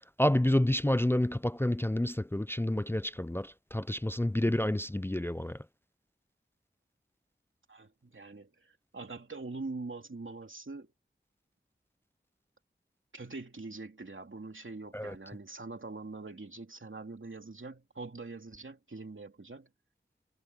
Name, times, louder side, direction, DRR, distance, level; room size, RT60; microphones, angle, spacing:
voice 1, 0.2-5.6 14.9-15.1, left 1 dB, 10° left, 0.4 m, -29 dB
voice 2, 7.7-10.9 13.1-19.7, right 3 dB, 80° right, 2.8 m, -43 dB
wide cardioid pair, 50°, 20 cm